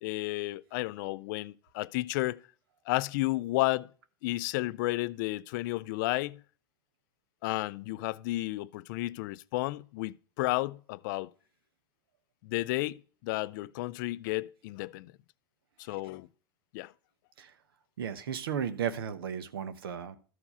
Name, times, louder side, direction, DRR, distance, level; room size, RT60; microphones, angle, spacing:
voice 1, 0.0-2.4 2.9-3.9 4.2-6.4 7.4-11.3 12.4-15.1 15.8-16.3 16.7-16.9, left 19 dB, 60° left, 0.4 m, -32 dB
voice 2, 18.0-20.2, right 8 dB, 75° right, 0.9 m, -34 dB
13.0 x 4.6 x 5.5 m
hypercardioid pair, 95°, 12 cm